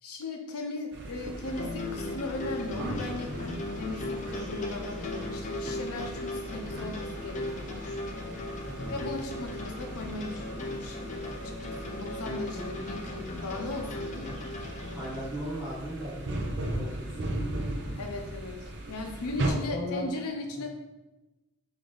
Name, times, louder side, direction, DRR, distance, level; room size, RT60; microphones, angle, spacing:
voice 1, 0.0-8.0 8.9-14.4 18.0-20.7, left 2 dB, 85° left, 3 dB, 0.7 m, -38 dB
sound 1, 0.9-19.5, right 1 dB, 55° right, 0.6 m, -38 dB
sound 2, 1.4-15.3, left 2 dB, 35° left, 0.5 m, -37 dB
voice 2, 14.9-17.3 19.4-20.0 20.6-20.7, equal, ahead, -13 dB, 1.2 m, -38 dB
3.6 x 3.4 x 3.8 m, 1.1 s
head